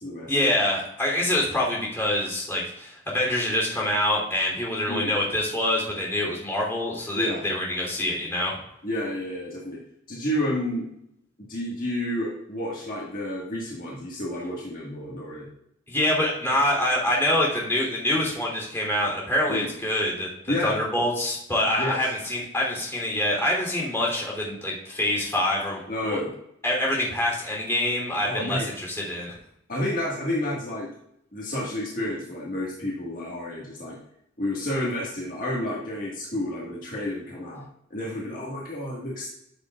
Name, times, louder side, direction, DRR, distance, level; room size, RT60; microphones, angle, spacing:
voice 1, 0.3-8.5 15.9-20.3 20.6-26.2 26.6-29.3, left 1 dB, 15° left, -3 dB, 3.0 m, -25 dB
voice 2, 8.8-9.8 10.1-10.9 11.5-15.5 19.5-19.7 20.5-20.8 21.8-22.0 25.9-26.3 28.2-28.7 29.7-30.9 31.3-34.0 34.4-37.6 37.9-39.3, left 1 dB, 50° left, -5 dB, 1.8 m, -30 dB
13.5 x 6.7 x 2.4 m, 0.74 s
head